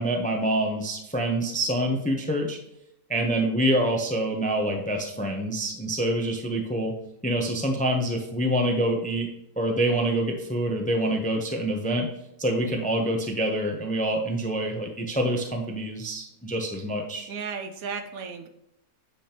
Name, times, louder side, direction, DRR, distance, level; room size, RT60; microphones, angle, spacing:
voice 1, 0.0-2.6 3.1-6.9 7.2-9.3 9.6-12.1 12.4-17.3, right 1 dB, 10° left, 2 dB, 0.5 m, -26 dB
voice 2, 17.3-18.5, right 5 dB, 75° right, 7 dB, 1.2 m, -34 dB
8.4 x 5.1 x 2.9 m, 0.80 s
omnidirectional pair, 1.6 m